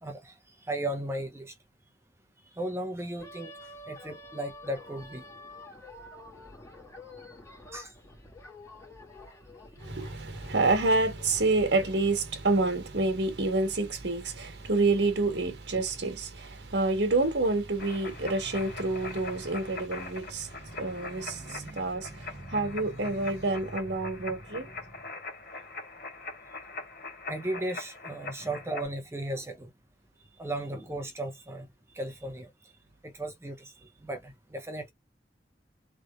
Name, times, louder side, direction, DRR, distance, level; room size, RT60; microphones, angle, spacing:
voice 1, 0.0-1.6 2.5-5.2 7.5-8.0 21.6-21.8 27.3-29.7 30.4-31.7 31.9-32.7 33.0-34.9, right 1 dB, 15° right, 0.6 m, -36 dB
sound 1, 3.2-12.0, left 2 dB, 20° left, 2.3 m, -48 dB
voice 2, 9.8-24.7, right 2 dB, 80° right, 1.2 m, -28 dB
sound 2, 17.8-28.9, left 3 dB, 60° left, 2.5 m, -42 dB
3.8 x 3.2 x 2.3 m
head